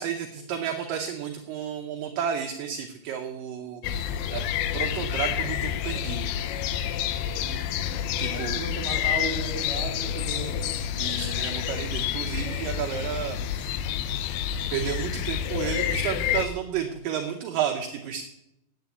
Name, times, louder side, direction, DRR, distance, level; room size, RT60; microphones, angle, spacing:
voice 1, 0.0-4.4 4.7-6.3 8.2-8.6 11.0-13.7 14.7-18.2, right 8 dB, 70° right, 3 dB, 2.3 m, -32 dB
sound 1, 3.8-16.5, left 9 dB, 85° left, 2.6 m, -29 dB
voice 2, 7.3-10.8, right 3 dB, 35° right, 1 dB, 3.1 m, -36 dB
9.2 x 8.8 x 8.3 m, 0.85 s
omnidirectional pair, 4.4 m